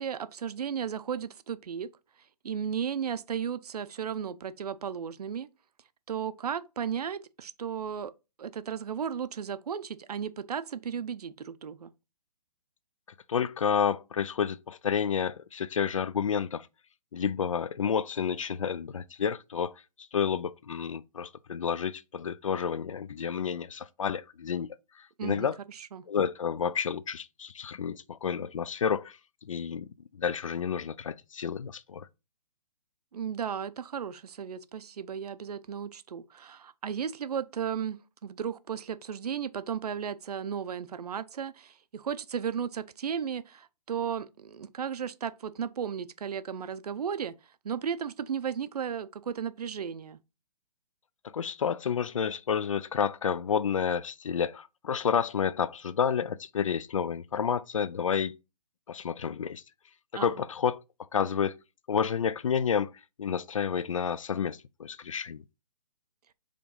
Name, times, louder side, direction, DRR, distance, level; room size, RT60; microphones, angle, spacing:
voice 1, 0.0-1.9 2.4-5.5 6.1-8.1 8.4-11.9 25.2-25.5 25.9-26.1 33.1-38.0 38.2-47.4 47.6-50.2 60.1-60.4, right 7 dB, 65° right, 0.6 m, -35 dB
voice 2, 13.3-16.7 17.1-19.8 20.1-24.7 25.0-25.6 26.1-32.1 51.3-58.4 58.9-59.6 60.1-60.8 61.1-61.6 61.9-62.9 63.2-65.4, left 7 dB, 50° left, 0.4 m, -30 dB
5.0 x 3.6 x 5.3 m
hypercardioid pair, 180°, 21 cm